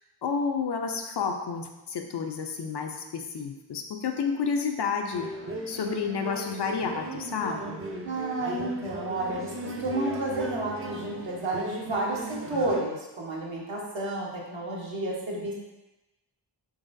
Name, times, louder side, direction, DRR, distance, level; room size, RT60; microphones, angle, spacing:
voice 1, 0.2-5.3 5.7-7.8, left 5 dB, 60° left, 4 dB, 0.5 m, -30 dB
sound 1, 5.1-12.8, right 2 dB, 30° right, 0.4 m, -37 dB
voice 2, 8.0-15.5, right 2 dB, 70° right, -4 dB, 1.1 m, -31 dB
4.0 x 3.1 x 2.6 m, 1.0 s
cardioid pair, 45°, 48 cm